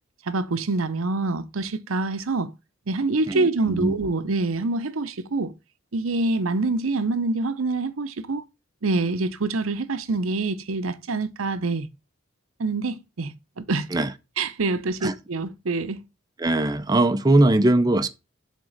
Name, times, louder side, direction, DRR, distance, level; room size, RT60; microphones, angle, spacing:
voice 1, 0.3-2.5 2.9-5.5 5.9-8.4 8.8-11.9 12.6-13.9 14.4-16.0, right 3 dB, 85° right, 0.7 m, -26 dB
voice 2, 3.3-3.9 13.9-14.1 15.0-15.1 16.4-18.1, right 2 dB, 20° right, 0.5 m, -20 dB
7.3 x 3.7 x 6.4 m
head